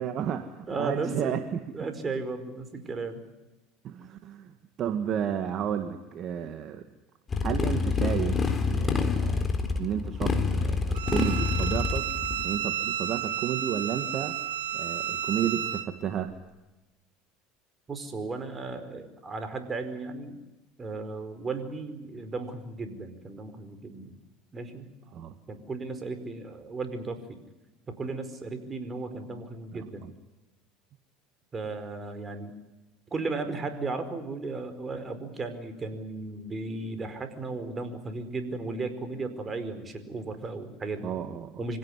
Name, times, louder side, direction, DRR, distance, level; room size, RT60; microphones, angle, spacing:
voice 1, 0.0-1.9 3.8-4.5 4.8-6.8 7.4-8.4 8.7-9.5 9.7-12.1 12.4-14.4 14.7-16.3 25.1-25.3 29.7-30.1 41.0-41.6, right 9 dB, 50° right, 8 dB, 1.9 m, -32 dB
voice 2, 0.7-1.4 1.7-3.2 17.9-20.4 20.8-24.1 24.5-24.9 25.5-27.4 27.9-30.0 31.5-32.5 33.1-41.1 41.6-41.8, right 3 dB, 25° right, 9 dB, 4.7 m, -35 dB
Motorcycle, 7.3-12.4, left 4 dB, 25° left, 3.9 m, -27 dB
Bowed string instrument, 10.9-15.9, right 10 dB, 85° right, 1.6 m, -32 dB
25.5 x 17.0 x 9.8 m, 1.0 s
hypercardioid pair, 90°, 0 cm